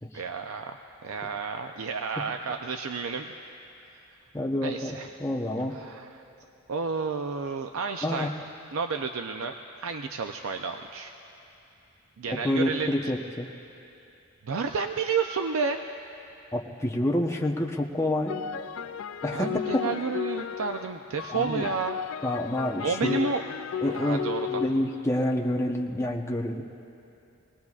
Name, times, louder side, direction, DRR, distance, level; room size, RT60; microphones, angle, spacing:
voice 1, 0.1-3.3 4.6-5.1 5.7-6.2 6.7-8.3 8.7-9.5 9.8-11.1 12.2-13.1 14.4-15.8 19.3-22.0 22.8-23.5 23.9-24.5, right 5 dB, 85° right, 5 dB, 0.5 m, -31 dB
voice 2, 4.3-5.8 8.0-8.3 12.4-13.5 16.5-18.4 19.2-19.8 21.3-21.7 22.2-23.2 23.8-26.6, left 1 dB, 15° left, -1 dB, 0.9 m, -28 dB
sound 1, 18.3-25.7, left 8 dB, 75° left, 0.4 m, -35 dB
26.0 x 19.0 x 2.4 m, 2.9 s
head